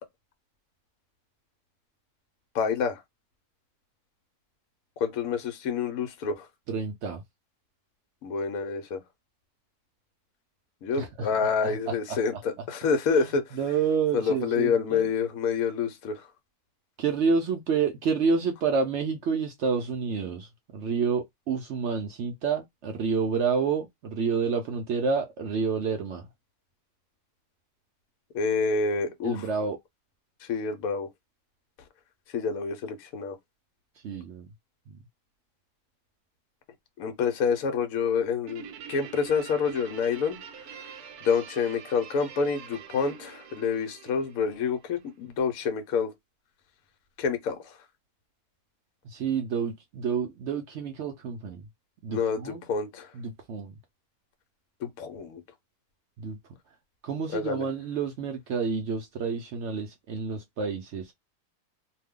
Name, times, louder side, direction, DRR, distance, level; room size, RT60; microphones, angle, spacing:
voice 1, 2.5-3.0 5.0-6.5 8.2-9.0 10.8-13.6 14.1-16.3 28.3-29.5 30.4-31.1 32.3-33.4 37.0-40.4 40.7-41.0 41.2-46.1 47.2-47.8 52.1-53.1 54.8-55.4 57.3-57.7, left 5 dB, 70° left, 1.0 m, -28 dB
voice 2, 6.7-7.2 11.0-11.3 11.6-12.2 13.1-13.2 13.6-15.1 17.0-26.3 29.2-29.8 34.0-34.5 34.9-35.0 49.0-51.7 52.0-52.7 53.1-53.8 56.2-56.4 57.0-61.1, right 5 dB, 70° right, 0.7 m, -29 dB
Guitar, 38.5-45.2, right 8 dB, 85° right, 1.1 m, -45 dB
2.6 x 2.2 x 3.5 m
omnidirectional pair, 1.6 m